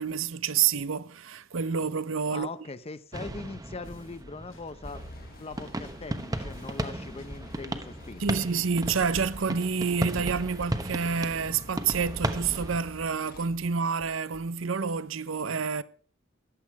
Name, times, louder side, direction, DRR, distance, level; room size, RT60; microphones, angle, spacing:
voice 1, 0.0-2.5 8.2-15.8, right 6 dB, 75° right, 0.7 m, -28 dB
voice 2, 2.3-5.0 5.4-8.4, left 3 dB, 30° left, 0.7 m, -41 dB
sound 1, 3.1-12.8, right 1 dB, 20° right, 1.0 m, -35 dB
sound 2, 3.8-4.2 4.5-6.9 7.2-9.5 9.8-12.2 12.5-14.5, left 1 dB, 65° left, 1.4 m, -54 dB
sound 3, 4.8-13.5, left 1 dB, 50° left, 1.5 m, -50 dB
14.5 x 10.5 x 4.7 m
head